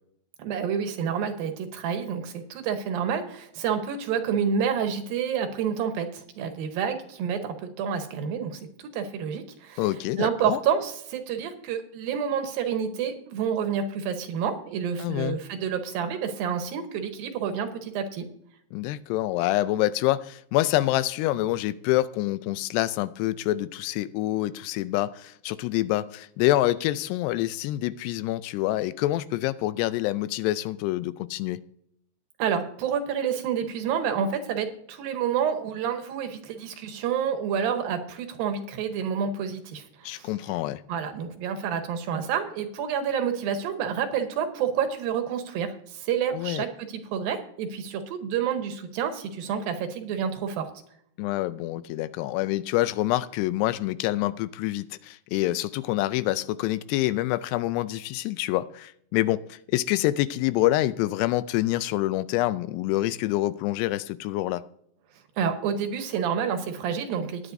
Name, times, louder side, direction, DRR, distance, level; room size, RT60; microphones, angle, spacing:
voice 1, 0.4-9.9 10.2-18.3 32.4-40.3 40.9-50.7 65.4-67.5, right 7 dB, 70° right, 2.5 m, -29 dB
voice 2, 9.8-10.6 15.0-15.4 18.7-31.6 40.0-40.8 46.3-46.6 51.2-64.6, left 16 dB, 85° left, 2.6 m, -26 dB
18.5 x 9.9 x 2.6 m
omnidirectional pair, 4.9 m